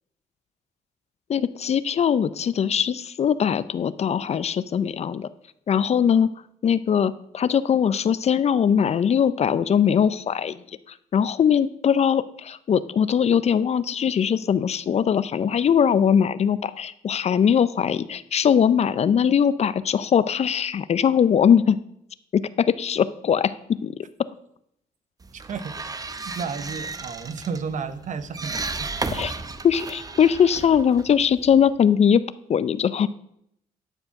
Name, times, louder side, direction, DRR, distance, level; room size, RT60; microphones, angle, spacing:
voice 1, 1.3-5.3 5.7-6.3 6.6-10.6 11.1-21.8 22.3-23.5 23.8-24.0 29.1-29.3 29.6-33.1, left 8 dB, 45° left, 16 dB, 0.5 m, -21 dB
sound 1, 25.2-31.7, right 3 dB, 25° right, 0.7 m, -34 dB
voice 2, 25.5-25.9 26.2-28.9, right 5 dB, 60° right, 12 dB, 0.9 m, -32 dB
11.5 x 4.6 x 5.8 m, 0.75 s
cardioid pair, 80°, 15 cm